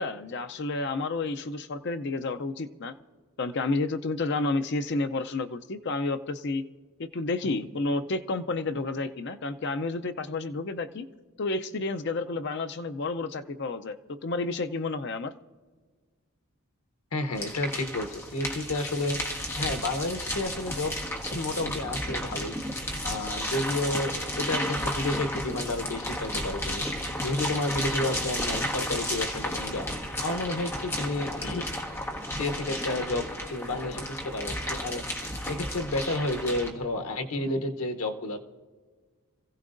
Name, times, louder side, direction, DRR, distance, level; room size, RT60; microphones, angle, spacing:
voice 1, 0.0-2.9 3.4-6.6 7.0-11.1 11.4-15.3, left 3 dB, 50° left, 9 dB, 0.5 m, -30 dB
voice 2, 17.1-19.2 19.6-20.9 21.3-22.6 23.0-26.9 27.2-31.6 32.4-38.4, left 2 dB, 90° left, 7 dB, 1.0 m, -31 dB
sound 1, 17.3-36.7, left 1 dB, 10° left, 1.3 m, -33 dB
26.0 x 15.5 x 2.6 m, 1.5 s
head